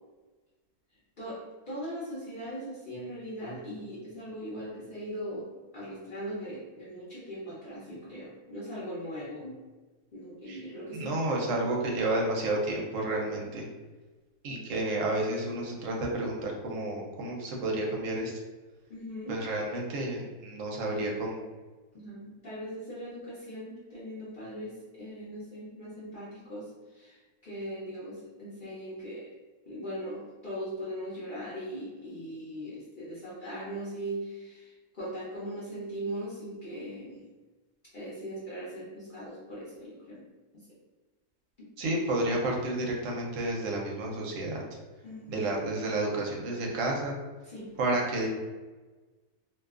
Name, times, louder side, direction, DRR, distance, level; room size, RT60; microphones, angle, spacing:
voice 1, 1.7-9.6 10.1-11.2 13.3-13.5 18.9-19.4 21.9-29.3 29.7-37.3 37.9-40.2 40.5-40.8 41.6-41.7 45.0-45.5 47.4-48.0, equal, 50° left, -9 dB, 0.6 m, -40 dB
voice 2, 10.9-13.6 14.4-18.3 19.3-21.4 41.8-44.6 45.3-47.2 47.8-48.3, right 2 dB, 70° right, -1 dB, 0.9 m, -31 dB
2.5 x 2.3 x 2.3 m, 1.3 s
omnidirectional pair, 1.6 m